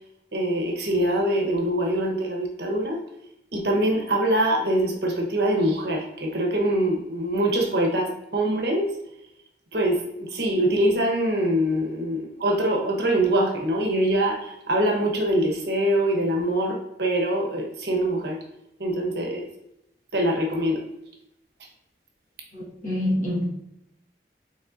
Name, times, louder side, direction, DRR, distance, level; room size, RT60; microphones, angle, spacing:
voice 1, 0.3-3.0 3.5-8.9 9.7-18.4 18.8-19.5 20.1-20.8, right 1 dB, 70° right, 0 dB, 1.0 m, -24 dB
voice 2, 22.5-23.4, left 1 dB, 45° left, -6 dB, 1.6 m, -26 dB
5.1 x 3.6 x 2.5 m, 0.83 s
head